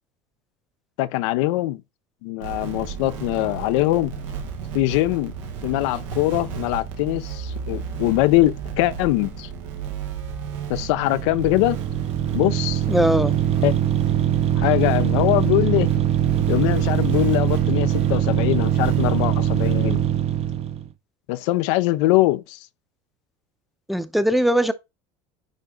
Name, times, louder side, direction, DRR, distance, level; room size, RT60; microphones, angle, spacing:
voice 1, 1.0-1.8 2.2-4.1 4.7-5.3 5.6-9.5 10.7-11.8 12.3-12.8 13.6-13.8 14.5-15.9 16.5-20.0 21.3-22.6, left 17 dB, 80° left, 0.6 m, -22 dB
sound 1, 2.4-20.1, right 7 dB, 90° right, 1.9 m, -34 dB
sound 2, 11.0-20.9, right 11 dB, 40° right, 0.9 m, -22 dB
voice 2, 12.9-13.3 23.9-24.7, equal, ahead, 0.8 m, -20 dB
10.0 x 3.4 x 3.8 m
supercardioid pair, 105°, 15 cm